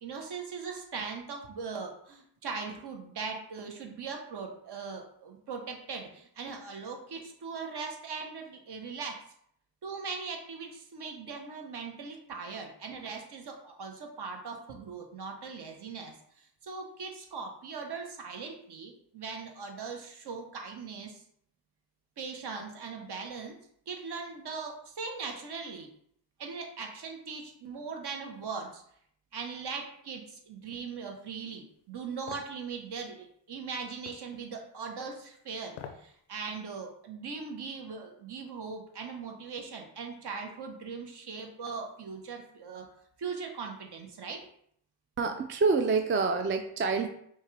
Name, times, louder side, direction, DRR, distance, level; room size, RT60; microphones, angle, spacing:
voice 1, 0.0-9.2 9.8-21.2 22.2-23.5 23.9-25.9 26.4-28.8 29.3-42.9 43.2-44.4, right 5 dB, 55° right, 2 dB, 1.1 m, -40 dB
sound 1, 32.3-32.5 34.1-34.3 35.7-36.1 36.5-36.6, left 8 dB, 90° left, 0.6 m, -44 dB
voice 2, 45.2-47.1, right 4 dB, 25° right, 6 dB, 0.4 m, -27 dB
5.4 x 2.4 x 3.3 m, 0.68 s
cardioid pair, 65°, 47 cm